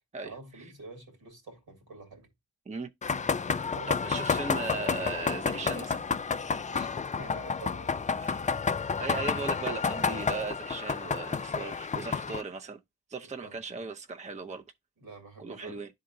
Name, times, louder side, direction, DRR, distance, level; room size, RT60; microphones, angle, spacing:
voice 1, 0.2-2.3 3.7-4.1 6.7-6.9 7.2-7.9 9.6-9.9 13.2-13.6 15.0-15.8, right 3 dB, 70° right, 2.4 m, -46 dB
sound 1, 3.0-12.4, left 5 dB, 20° left, 0.4 m, -30 dB
voice 2, 3.9-6.1 8.2-8.4 9.0-12.8 13.1-14.6 15.4-15.9, right 4 dB, 20° right, 0.6 m, -37 dB
11.0 x 3.9 x 2.6 m
supercardioid pair, 45°, 38 cm